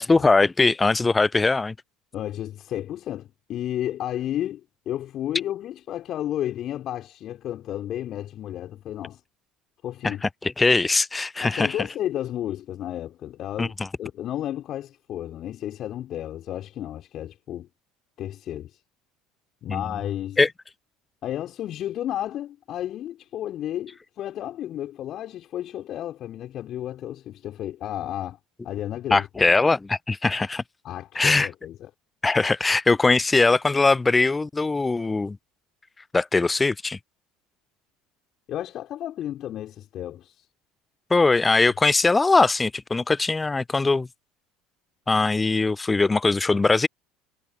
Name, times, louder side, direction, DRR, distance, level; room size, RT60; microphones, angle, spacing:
voice 1, 0.0-1.7 10.0-10.1 10.6-11.8 13.6-13.7 19.7-19.8 20.4-20.5 29.1-30.6 31.2-31.5 32.2-35.4 36.1-37.0 41.1-44.1 45.1-46.9, left 3 dB, 15° left, 0.4 m, -21 dB
voice 2, 2.1-9.2 9.8-10.2 11.4-17.7 18.2-18.8 19.6-20.4 21.2-28.4 28.6-29.3 30.8-31.9 38.5-40.4, left 12 dB, 50° left, 5.0 m, -32 dB
figure-of-eight pair, 65°, 0 cm